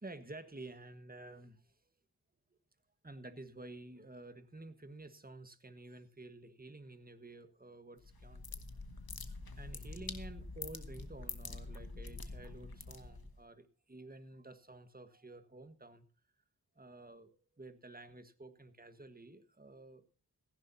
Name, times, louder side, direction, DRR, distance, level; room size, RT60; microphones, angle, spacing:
voice 1, 0.0-1.7 3.0-8.4 9.3-16.0 16.7-20.0, right 2 dB, 25° right, 10 dB, 1.5 m, -51 dB
sound 1, 8.0-13.4, left 3 dB, 65° left, 1.7 m, -46 dB
17.5 x 15.5 x 2.8 m, 0.35 s
wide cardioid pair, 75°, 39 cm